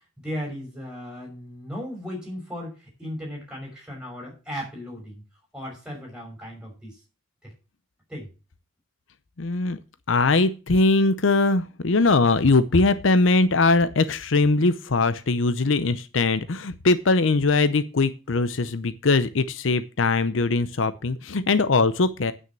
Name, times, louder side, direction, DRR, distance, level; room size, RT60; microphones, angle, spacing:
voice 1, 0.2-5.2 5.5-7.0 7.4-7.5 8.1-8.3, equal, 5° right, -1 dB, 5.9 m, -36 dB
voice 2, 9.4-9.8 10.1-22.3, left 3 dB, 70° left, 13 dB, 0.7 m, -21 dB
9.3 x 6.4 x 7.4 m, 0.31 s
head